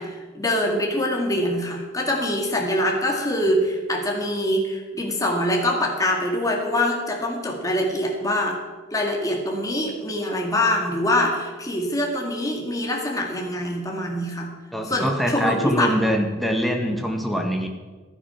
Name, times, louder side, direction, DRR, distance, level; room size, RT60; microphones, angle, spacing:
voice 1, 0.0-8.6 8.9-14.5 14.9-15.9, left 1 dB, 15° left, 0 dB, 2.1 m, -24 dB
voice 2, 14.7-17.7, equal, ahead, 2 dB, 1.6 m, -23 dB
15.0 x 11.5 x 5.8 m, 1.3 s
head